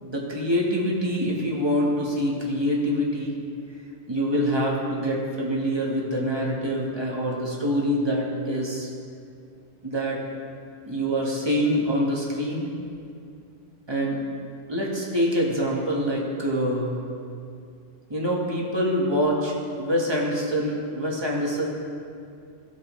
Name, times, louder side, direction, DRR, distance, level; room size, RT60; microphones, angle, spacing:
voice 1, 0.0-3.3 4.1-8.9 9.8-10.2 10.8-12.7 13.9-14.2 14.7-17.0 18.1-21.6, equal, 20° right, -3 dB, 1.2 m, -25 dB
16.0 x 5.5 x 3.1 m, 2.4 s
omnidirectional pair, 1.3 m